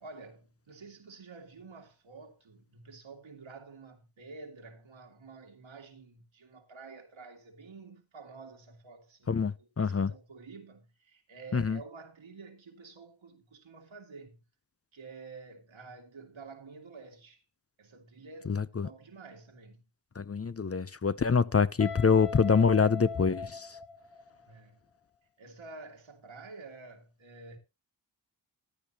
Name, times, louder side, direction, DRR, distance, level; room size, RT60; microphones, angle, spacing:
voice 1, 0.0-14.4 14.9-17.4 17.8-19.8 24.3-24.8 25.4-27.6, right 4 dB, 90° right, 2.4 m, -49 dB
voice 2, 9.3-10.1 11.5-11.8 18.5-18.9 20.2-23.8, left 5 dB, 30° left, 0.6 m, -26 dB
Guitar, 21.8-24.6, left 4 dB, 85° left, 3.3 m, -41 dB
14.5 x 10.0 x 2.9 m
cardioid pair, 50°, 45 cm